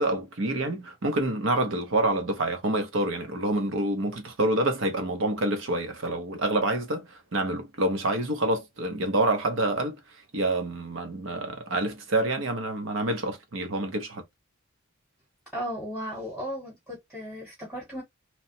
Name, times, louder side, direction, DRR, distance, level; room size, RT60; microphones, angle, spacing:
voice 1, 0.0-10.0 10.3-14.2, right 2 dB, 60° right, 0.7 m, -27 dB
voice 2, 15.5-18.0, equal, ahead, 1.1 m, -35 dB
3.0 x 2.2 x 2.7 m
head